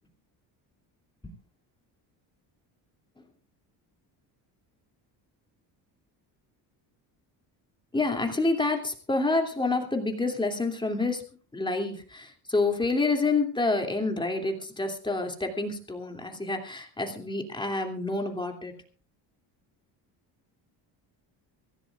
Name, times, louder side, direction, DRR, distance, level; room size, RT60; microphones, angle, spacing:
voice 1, 7.9-11.2 11.5-18.7, left 3 dB, 10° left, 4 dB, 2.7 m, -28 dB
24.0 x 16.0 x 2.5 m, 0.37 s
cardioid pair, 130°, 42 cm